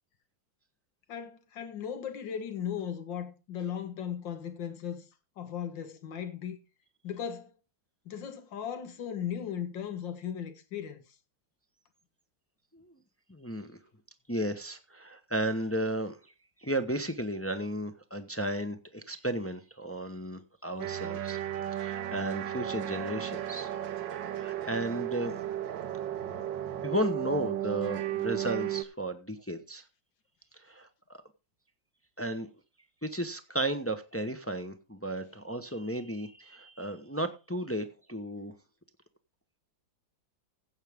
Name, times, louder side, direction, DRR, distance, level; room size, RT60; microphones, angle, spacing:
voice 1, 1.1-5.1 5.4-6.6 7.0-7.5 8.1-11.0, left 8 dB, 85° left, 2.1 m, -37 dB
voice 2, 13.3-13.8 14.3-16.3 16.6-23.7 24.4-25.4 26.8-29.8 30.5-31.2 32.2-32.5 33.0-38.5, right 1 dB, 10° left, 0.6 m, -34 dB
sound 1, 20.8-28.8, right 12 dB, 80° right, 1.6 m, -34 dB
15.5 x 8.2 x 3.6 m
omnidirectional pair, 2.0 m